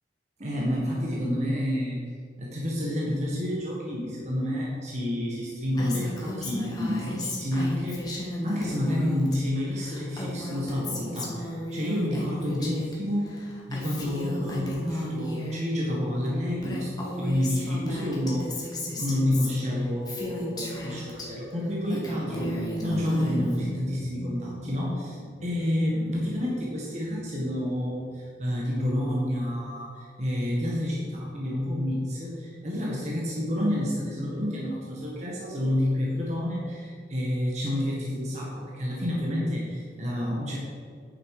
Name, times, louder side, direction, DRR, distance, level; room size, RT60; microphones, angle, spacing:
voice 1, 0.4-2.1 2.4-13.3 13.7-40.6, left 1 dB, 40° right, -4 dB, 1.7 m, -29 dB
Female speech woman speaking, 5.8-9.4 9.6-13.0 13.2-15.6 16.3-16.4 16.6-21.3 21.7-23.6, left 1 dB, 25° left, 1.8 m, -35 dB
sound 1, 22.2-28.0, equal, 90° left, 1.7 m, -38 dB
9.8 x 7.2 x 4.9 m, 2.1 s
head